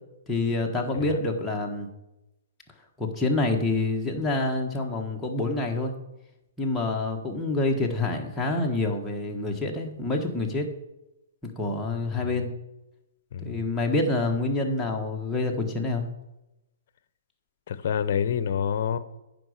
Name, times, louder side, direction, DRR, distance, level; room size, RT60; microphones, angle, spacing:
voice 1, 0.3-1.9 3.0-5.9 6.6-10.7 11.4-12.5 13.4-16.0, left 2 dB, 5° left, -1 dB, 1.5 m, -27 dB
voice 2, 17.7-19.0, left 8 dB, 55° left, 14 dB, 0.8 m, -27 dB
9.2 x 5.2 x 6.5 m, 0.94 s
hypercardioid pair, 140°, 0 cm